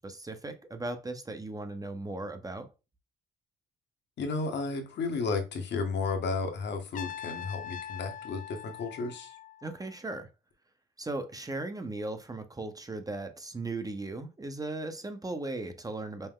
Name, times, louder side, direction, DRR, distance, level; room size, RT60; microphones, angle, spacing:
voice 1, 0.0-2.7 9.6-10.3 11.0-16.3, right 2 dB, 20° right, 0.7 m, -37 dB
voice 2, 4.2-9.4, left 4 dB, 60° left, 1.1 m, -33 dB
Trumpet, 6.9-9.9, left 9 dB, 40° left, 0.4 m, -42 dB
5.4 x 2.1 x 3.6 m
cardioid pair, 90°, 20 cm